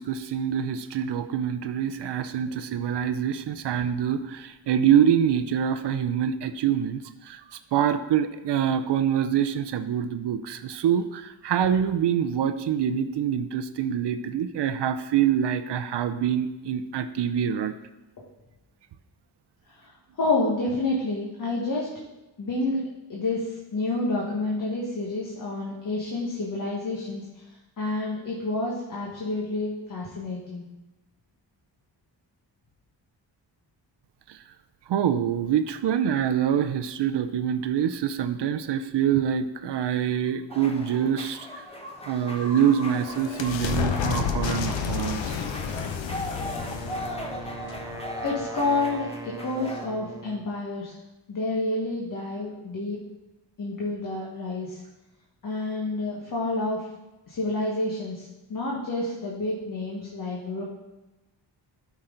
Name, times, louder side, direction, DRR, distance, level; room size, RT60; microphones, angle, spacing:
voice 1, 0.0-7.0 7.3-7.4 7.7-17.7 34.9-41.5 42.1-45.4, right 9 dB, 65° right, 9 dB, 0.6 m, -25 dB
voice 2, 20.2-21.9 22.4-27.2 27.8-30.6 48.2-50.9 51.3-53.0 53.6-54.8 55.4-56.8 57.3-60.6, left 2 dB, 45° left, -3 dB, 1.6 m, -29 dB
sound 1, 40.5-49.9, left 1 dB, 15° left, 1.0 m, -38 dB
sound 2, 42.3-48.7, left 7 dB, 80° left, 0.9 m, -31 dB
Wind instrument woodwind instrument, 46.4-50.5, right 2 dB, 10° right, 0.4 m, -40 dB
13.0 x 6.0 x 3.9 m, 1.0 s
wide cardioid pair, 160°, 44 cm